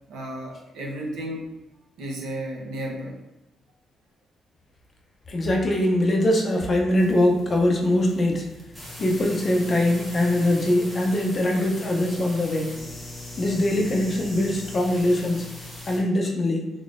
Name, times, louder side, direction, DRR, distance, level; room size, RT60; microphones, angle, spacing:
voice 1, 0.1-1.4 2.0-3.2, right 1 dB, 85° right, -1 dB, 0.8 m, -33 dB
voice 2, 5.3-8.5 9.0-12.7 13.4-15.5 15.9-16.7, left 1 dB, 30° left, 1 dB, 0.5 m, -22 dB
sound 1, 6.9-16.0, left 1 dB, ahead, 0.9 m, -40 dB
3.6 x 3.6 x 2.5 m, 0.96 s
cardioid pair, 170°, 0 cm